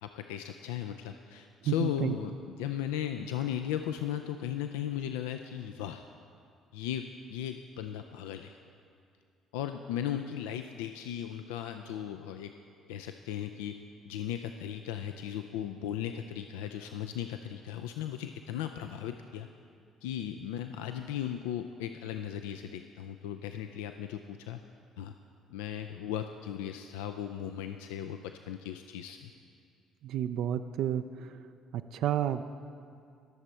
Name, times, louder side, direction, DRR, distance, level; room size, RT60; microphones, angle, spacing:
voice 1, 0.0-6.0 6.7-8.6 9.5-12.6 12.9-19.5 20.0-24.6 25.0-25.2 25.5-29.3, left 10 dB, 75° left, 7 dB, 0.3 m, -37 dB
voice 2, 1.6-2.2 30.0-31.3 31.7-32.4, right 11 dB, 60° right, 9 dB, 0.3 m, -31 dB
19.0 x 6.9 x 4.3 m, 2.3 s
figure-of-eight pair, 50°, 0 cm